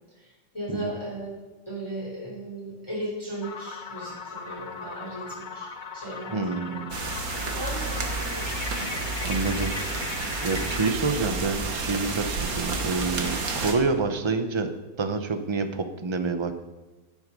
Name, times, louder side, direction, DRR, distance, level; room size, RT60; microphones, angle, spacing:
voice 1, 0.1-1.3 1.7-6.9 7.5-8.5, right 1 dB, 15° left, -6 dB, 3.8 m, -36 dB
sound 1, 3.4-10.9, left 5 dB, 45° left, 0.6 m, -38 dB
voice 2, 6.3-7.0 9.2-10.1 10.4-14.7 15.0-16.5, right 4 dB, 25° right, 7 dB, 0.6 m, -28 dB
sound 2, 6.9-13.7, right 3 dB, 55° right, 1.8 m, -30 dB
15.5 x 8.0 x 5.4 m, 1.1 s
omnidirectional pair, 1.9 m